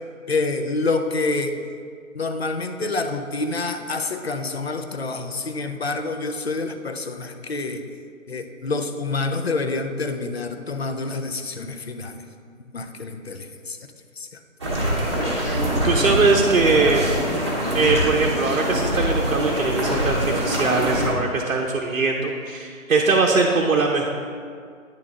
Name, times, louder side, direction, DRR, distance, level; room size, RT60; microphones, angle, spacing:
voice 1, 0.3-1.7 2.1-7.8 8.3-12.2 12.7-13.8 14.2-14.4, left 3 dB, 50° left, 7 dB, 0.5 m, -27 dB
sound 1, 14.6-21.1, equal, 20° right, 0.8 m, -24 dB
voice 2, 15.4-17.1 17.7-24.1, right 4 dB, 85° right, 0 dB, 0.8 m, -21 dB
9.8 x 3.8 x 3.6 m, 2.2 s
figure-of-eight pair, 170°, 41 cm